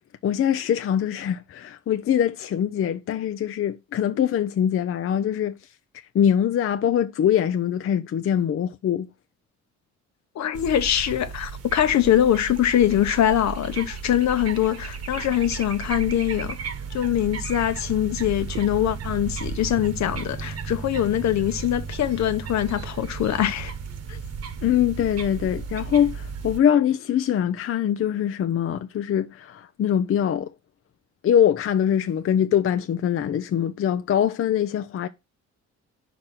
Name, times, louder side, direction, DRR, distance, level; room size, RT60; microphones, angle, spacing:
voice 1, 0.2-5.5 6.1-9.1 24.6-30.5 31.2-35.1, left 9 dB, 45° left, 0.5 m, -23 dB
voice 2, 10.3-16.6 16.9-23.7 24.1-24.2, left 11 dB, 65° left, 0.9 m, -23 dB
sound 1, 10.5-26.6, right 6 dB, 55° right, 1.2 m, -34 dB
5.2 x 4.3 x 6.0 m
cardioid pair, 90°, 30 cm